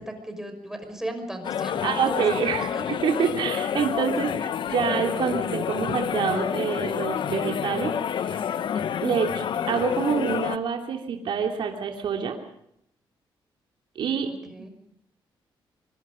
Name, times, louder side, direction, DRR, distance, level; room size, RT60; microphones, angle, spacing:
voice 1, 0.0-2.2 2.6-2.8 14.3-14.7, right 1 dB, 5° right, 5 dB, 6.0 m, -37 dB
sound 1, 1.4-10.6, left 8 dB, 70° left, 1.0 m, -28 dB
voice 2, 1.8-7.9 8.2-8.4 9.0-12.4 13.9-14.3 14.6-14.7, right 6 dB, 75° right, 2 dB, 3.0 m, -27 dB
24.5 x 24.0 x 5.3 m, 0.74 s
cardioid pair, 110°, 9 cm